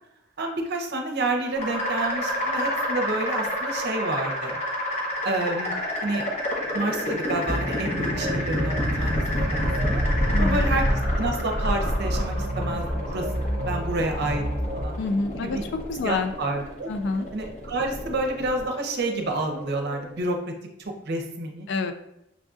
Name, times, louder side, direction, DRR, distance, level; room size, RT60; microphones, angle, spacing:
voice 1, 0.4-4.6 5.2-5.7 6.0-6.2 6.7-9.2 9.5-10.0 10.4-10.9 11.1-13.2 13.6-14.9 15.4-15.6 16.0-16.9 17.3-20.4 21.0-21.7, right 2 dB, 55° right, 3 dB, 0.6 m, -29 dB
sound 1, 1.6-20.3, equal, 35° left, 0.9 m, -28 dB
sound 2, 7.5-14.8, equal, 25° right, 1.0 m, -30 dB
voice 2, 10.3-10.8 15.0-15.6 15.9-16.3 16.9-17.3 21.7-21.9, left 3 dB, 60° left, 8 dB, 0.3 m, -27 dB
6.1 x 2.6 x 2.4 m, 0.82 s
head